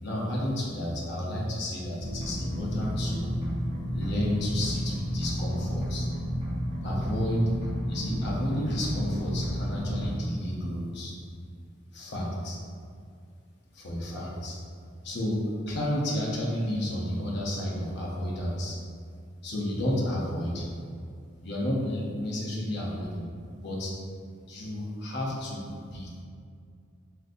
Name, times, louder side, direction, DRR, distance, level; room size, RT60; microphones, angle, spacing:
voice 1, 0.0-3.3 3.9-6.0 6.8-7.5 7.9-11.1 11.9-12.6 13.7-14.6 15.0-15.4 15.7-18.7 19.4-20.7 21.4-23.3 23.6-23.9 24.5-26.2, left 1 dB, 60° left, -4 dB, 0.7 m, -31 dB
sound 1, 2.0-10.1, equal, 30° right, 0.8 m, -31 dB
3.7 x 2.6 x 2.5 m, 2.2 s
head